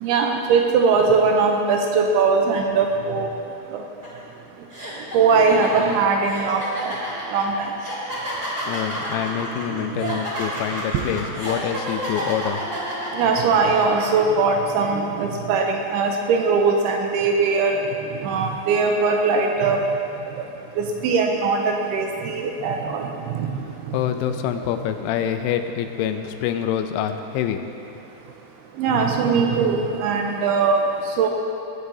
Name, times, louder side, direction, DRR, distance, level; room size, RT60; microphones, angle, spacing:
voice 1, 0.0-3.3 3.7-3.8 5.1-7.0 7.3-7.7 13.1-17.8 18.2-19.8 20.8-23.5 28.8-30.8 31.2-31.3, right 4 dB, 80° right, 2 dB, 2.3 m, -20 dB
sound 1, 4.0-4.2 4.7-14.0, equal, 15° right, 2.2 m, -30 dB
voice 2, 8.7-12.6 23.9-27.6, left 9 dB, 90° left, 7 dB, 2.9 m, -26 dB
20.0 x 8.4 x 2.7 m, 2.8 s
omnidirectional pair, 5.2 m